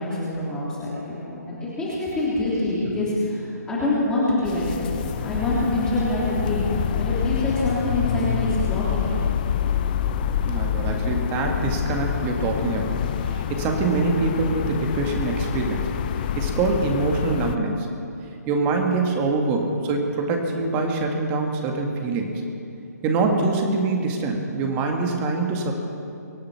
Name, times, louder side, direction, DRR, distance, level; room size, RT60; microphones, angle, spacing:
voice 1, 0.0-9.2, left 1 dB, 10° left, -8 dB, 3.3 m, -26 dB
sound 1, 4.5-17.6, left 9 dB, 30° left, 0.5 m, -27 dB
voice 2, 10.5-15.9 16.2-17.9 18.5-22.4 23.0-25.7, right 3 dB, 20° right, 2 dB, 1.8 m, -24 dB
24.5 x 8.7 x 5.8 m, 2.7 s
figure-of-eight pair, 145°, 9 cm